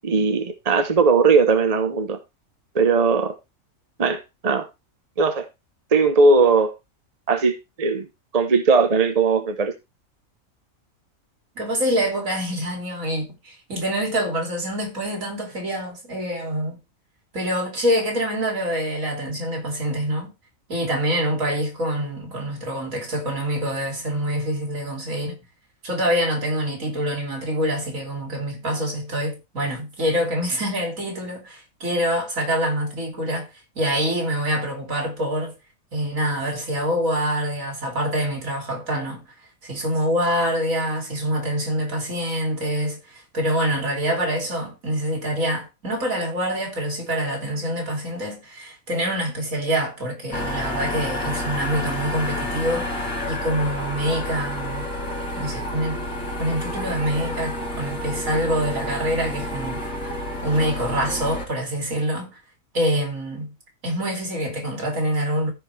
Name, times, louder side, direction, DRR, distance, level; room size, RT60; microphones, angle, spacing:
voice 1, 0.0-2.2 2.7-3.3 4.0-4.7 5.2-5.5 5.9-6.7 7.3-8.1 8.3-9.7, right 4 dB, 30° right, 1.0 m, -19 dB
voice 2, 11.6-16.8 17.3-20.3 20.7-25.4 25.8-33.5 33.8-35.6 35.9-39.2 39.6-54.9 55.3-56.0 56.4-60.1 60.4-62.3 62.7-63.5 63.8-65.5, equal, 75° right, 3.5 m, -25 dB
sound 1, 50.3-61.4, left 1 dB, 85° left, 3.9 m, -29 dB
15.0 x 5.1 x 3.3 m
omnidirectional pair, 1.4 m